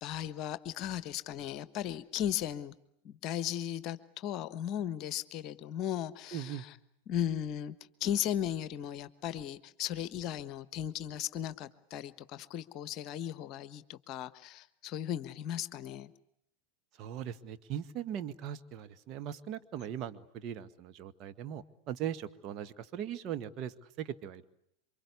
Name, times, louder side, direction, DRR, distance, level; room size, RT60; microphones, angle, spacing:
voice 1, 0.0-2.7 3.0-6.7 7.1-7.7 8.0-16.1, left 10 dB, 35° left, 15 dB, 1.3 m, -36 dB
voice 2, 6.3-6.7 17.0-24.5, right 10 dB, 35° right, 9 dB, 1.7 m, -39 dB
28.0 x 25.0 x 8.4 m, 0.75 s
figure-of-eight pair, 90°, 0 cm